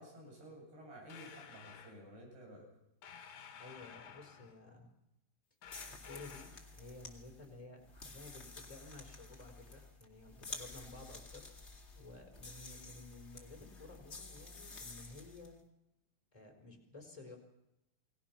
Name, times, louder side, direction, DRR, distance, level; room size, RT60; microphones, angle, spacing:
voice 1, 0.0-2.6, equal, 65° right, 0 dB, 10.0 m, -53 dB
sound 1, 1.1-2.0 3.0-4.6 5.6-6.7, left 7 dB, 60° left, 3.1 m, -54 dB
voice 2, 3.6-5.0 5.9-11.5 11.9-15.6 16.3-17.4, left 2 dB, 10° left, 2 dB, 4.3 m, -53 dB
sound 2, 5.6-15.5, left 3 dB, 25° left, 1.4 m, -51 dB
28.5 x 20.0 x 6.1 m, 0.87 s
omnidirectional pair, 4.9 m